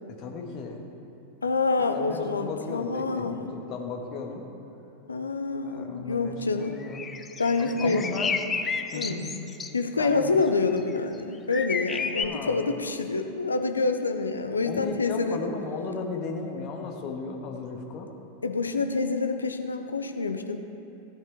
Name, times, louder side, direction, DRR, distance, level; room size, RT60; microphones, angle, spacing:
voice 1, 0.1-0.8 1.8-4.5 5.6-7.0 7.6-8.4 8.9-9.2 10.0-10.4 12.1-12.6 14.6-18.1, left 4 dB, 40° left, 2 dB, 1.4 m, -35 dB
voice 2, 1.4-3.4 5.1-6.8 7.4-8.1 8.9-9.3 9.7-15.5 18.4-20.6, left 3 dB, 75° left, 7 dB, 0.7 m, -27 dB
sound 1, 6.8-9.7 10.7-10.9 11.5-12.3, left 5 dB, 20° left, 0.5 m, -31 dB
16.0 x 8.5 x 3.4 m, 2.9 s
figure-of-eight pair, 90°, 0 cm